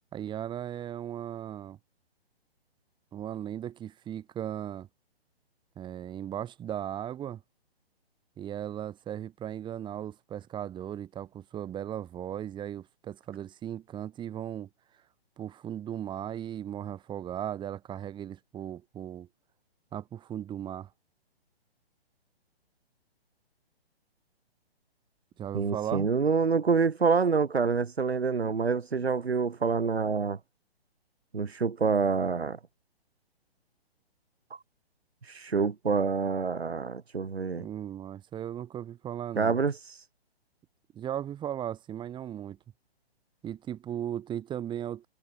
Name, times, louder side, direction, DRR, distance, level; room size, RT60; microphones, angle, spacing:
voice 1, 0.1-1.8 3.1-4.9 5.8-7.4 8.4-14.7 15.4-19.3 19.9-20.9 25.4-26.1 37.6-39.6 40.9-42.6 43.4-45.1, right 10 dB, 15° right, 4.4 m, -37 dB
voice 2, 25.5-30.4 31.3-32.6 35.3-37.7 39.4-40.0, right 5 dB, 75° right, 2.3 m, -27 dB
figure-of-eight pair, 135°, 31 cm